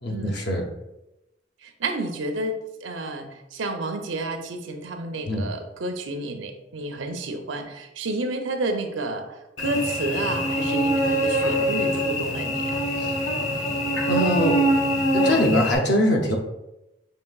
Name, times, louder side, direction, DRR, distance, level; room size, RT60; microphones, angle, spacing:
voice 1, 0.0-0.7 5.3-5.5 13.0-13.1 14.1-14.7 15.1-16.4, left 1 dB, 65° left, 2 dB, 0.7 m, -22 dB
voice 2, 1.6-9.3 9.6-12.8, right 2 dB, 85° right, 5 dB, 0.6 m, -30 dB
Cricket / Buzz, 9.6-15.8, equal, 85° left, 1.1 m, -24 dB
5.5 x 3.2 x 2.3 m, 0.94 s
head